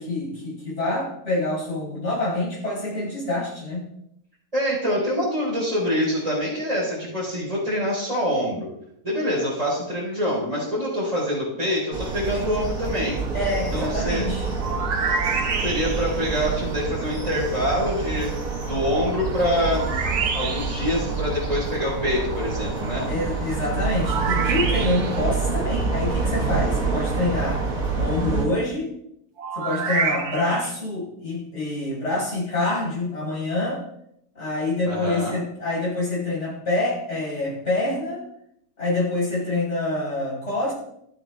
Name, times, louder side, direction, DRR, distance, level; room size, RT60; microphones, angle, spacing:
voice 1, 0.0-3.9 13.3-14.5 23.1-28.9 29.5-33.8 34.4-38.3 38.8-40.7, left 2 dB, 45° left, -6 dB, 5.5 m, -26 dB
voice 2, 4.5-8.7 9.0-13.2 13.7-14.2 15.6-18.3 18.6-23.1 34.8-35.4, equal, 20° right, -10 dB, 4.3 m, -25 dB
sound 1, 11.9-28.4, right 4 dB, 65° right, 2.4 m, -27 dB
sound 2, 14.6-16.2 19.7-20.9 24.0-25.3 29.4-30.7, right 5 dB, 85° right, 1.6 m, -27 dB
13.0 x 8.7 x 3.5 m, 0.75 s
omnidirectional pair, 1.6 m